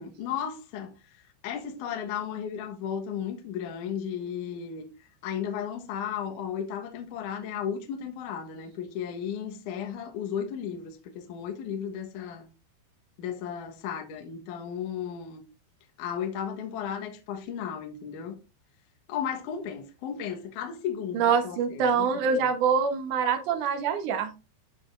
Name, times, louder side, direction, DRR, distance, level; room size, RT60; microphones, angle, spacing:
voice 1, 0.0-4.9 5.2-12.5 13.2-15.4 16.0-18.4 19.1-22.5, left 8 dB, 65° left, 2.2 m, -34 dB
voice 2, 21.1-24.3, right 6 dB, 75° right, 1.8 m, -25 dB
13.0 x 5.0 x 2.5 m
omnidirectional pair, 5.0 m